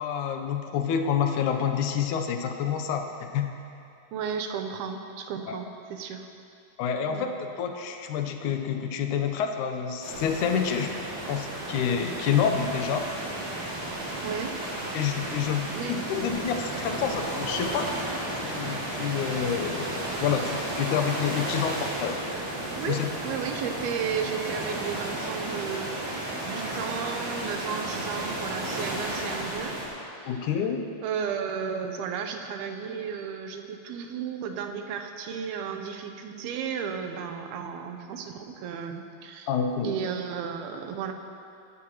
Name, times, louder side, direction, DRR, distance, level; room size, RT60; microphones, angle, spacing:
voice 1, 0.0-3.5 5.5-5.6 6.8-10.9 11.3-13.1 14.9-18.1 18.3-19.9 20.2-22.3 22.9-23.1 30.3-30.8 39.5-39.9, left 7 dB, 70° left, 5 dB, 2.0 m, -28 dB
voice 2, 4.1-6.3 7.1-7.3 13.9-14.5 15.7-16.0 22.7-29.8 30.2-30.3 31.0-39.5 39.8-41.1, right 7 dB, 90° right, 5 dB, 2.8 m, -34 dB
sound 1, 10.0-29.9, right 1 dB, 55° right, 5.6 m, -33 dB
24.5 x 12.5 x 3.1 m, 2.6 s
omnidirectional pair, 4.3 m